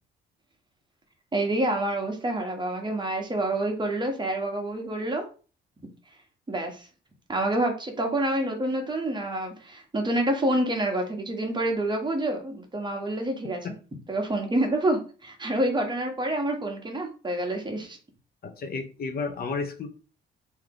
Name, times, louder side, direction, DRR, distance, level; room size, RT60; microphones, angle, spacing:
voice 1, 1.3-5.2 6.5-6.9 7.3-13.7 14.1-18.0, right 1 dB, 20° right, 2 dB, 1.2 m, -27 dB
voice 2, 18.4-19.9, left 4 dB, 50° left, 6 dB, 0.7 m, -32 dB
3.2 x 2.9 x 3.8 m, 0.36 s
cardioid pair, 90°, 20 cm